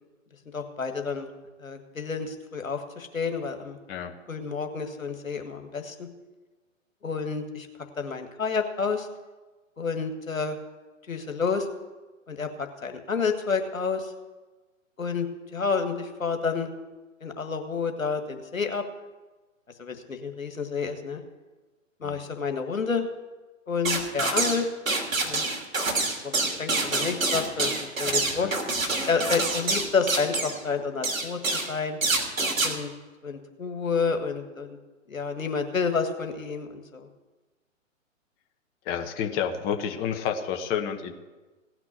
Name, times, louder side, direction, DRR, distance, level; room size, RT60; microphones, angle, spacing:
voice 1, 0.5-1.3 1.6-3.8 4.3-6.1 7.0-7.7 8.0-9.1 9.8-10.6 11.1-11.7 12.3-14.1 15.0-16.7 17.2-18.8 19.8-21.2 22.0-23.1 23.7-24.7 25.2-25.4 26.2-28.6 29.1-32.0 32.6-32.9 33.2-34.7 35.1-37.1, left 5 dB, 85° left, 6 dB, 1.8 m, -29 dB
sound 1, 23.8-24.6 24.9-30.6 31.0-31.7 32.0-32.7, right 3 dB, 80° right, 3.0 m, -26 dB
voice 2, 38.8-41.2, left 8 dB, 25° left, 5 dB, 1.1 m, -30 dB
17.0 x 6.1 x 9.4 m, 1.2 s
figure-of-eight pair, 125°, 40 cm